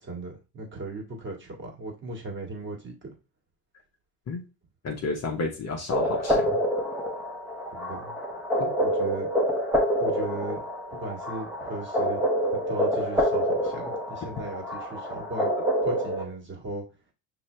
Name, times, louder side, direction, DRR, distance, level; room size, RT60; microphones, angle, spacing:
voice 1, 0.1-3.1 7.7-8.1 8.8-9.3 10.0-10.6 10.9-15.5 15.8-16.8, right 2 dB, 25° right, 0 dB, 1.9 m, -37 dB
voice 2, 4.8-6.6 8.6-8.7, left 3 dB, 35° left, 1 dB, 1.2 m, -31 dB
sound 1, 5.9-16.2, equal, 5° right, 1.3 m, -27 dB
5.6 x 2.9 x 3.2 m, 0.30 s
hypercardioid pair, 80°, 47 cm